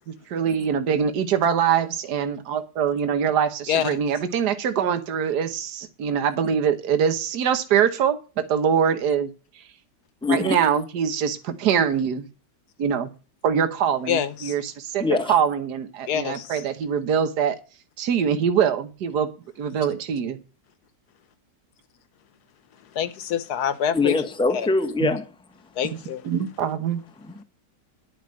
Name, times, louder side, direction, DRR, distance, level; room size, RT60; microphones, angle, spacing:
voice 1, 0.1-9.3 9.6-9.7 10.3-12.3 12.8-13.1 13.4-15.0 15.3-17.6 18.0-19.3 19.6-20.4 25.0-25.1 26.2-27.0, right 7 dB, 70° right, 1.7 m, -23 dB
voice 2, 3.7-4.0 14.1-14.5 16.1-16.6 22.9-24.1 24.5-24.7 25.8-26.2, left 9 dB, 65° left, 1.4 m, -26 dB
voice 3, 10.2-10.6 15.0-15.3 23.9-25.3 27.3-27.4, left 3 dB, 5° left, 0.7 m, -23 dB
11.0 x 5.4 x 7.5 m
omnidirectional pair, 1.9 m